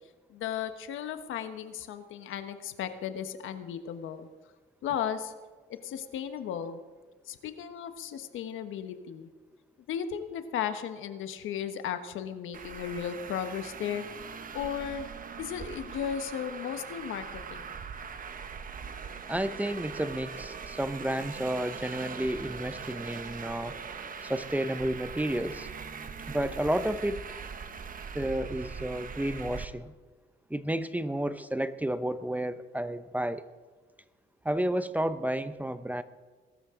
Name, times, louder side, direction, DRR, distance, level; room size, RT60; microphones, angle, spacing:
voice 1, 0.3-4.3 4.8-5.3 5.7-6.8 7.3-9.3 9.9-14.1 14.5-15.1 15.4-17.7, left 8 dB, 85° left, 9 dB, 1.3 m, -35 dB
Traffic noise roadway noise, 12.5-29.6, right 6 dB, 45° right, 1.1 m, -41 dB
voice 2, 19.3-23.8 24.2-25.7 26.3-27.3 28.1-29.9 30.5-33.5 34.4-36.0, right 1 dB, 10° right, 12 dB, 0.7 m, -31 dB
21.5 x 12.5 x 3.8 m, 1.4 s
cardioid pair, 90°, 20 cm